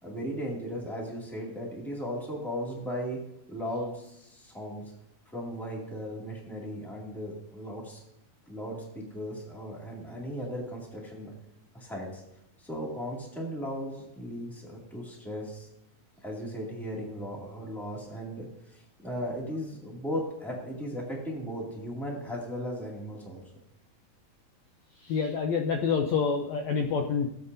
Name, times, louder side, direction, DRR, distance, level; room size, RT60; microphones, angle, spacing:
voice 1, 0.0-3.2 3.5-4.9 5.3-8.0 8.5-11.3 11.7-12.2 12.6-15.7 16.2-23.4, equal, ahead, -3 dB, 1.7 m, -36 dB
voice 2, 25.0-27.3, left 5 dB, 75° left, 3 dB, 1.7 m, -27 dB
17.0 x 8.3 x 2.7 m, 0.83 s
omnidirectional pair, 3.7 m